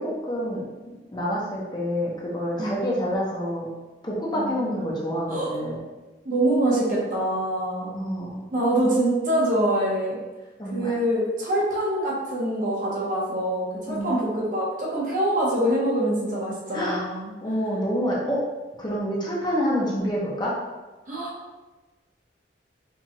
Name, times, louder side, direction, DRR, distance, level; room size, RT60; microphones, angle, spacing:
voice 1, 0.0-3.7 4.0-5.8 7.9-8.5 10.6-11.0 13.9-14.1 16.7-17.0 17.4-18.4 18.8-20.5, equal, 25° left, -5 dB, 0.7 m, -27 dB
voice 2, 4.3-4.9 5.3-5.5 6.2-7.9 8.5-10.2 10.7-17.3 21.1-21.3, right 1 dB, 45° right, -5 dB, 1.0 m, -25 dB
4.5 x 2.4 x 2.9 m, 1.2 s
head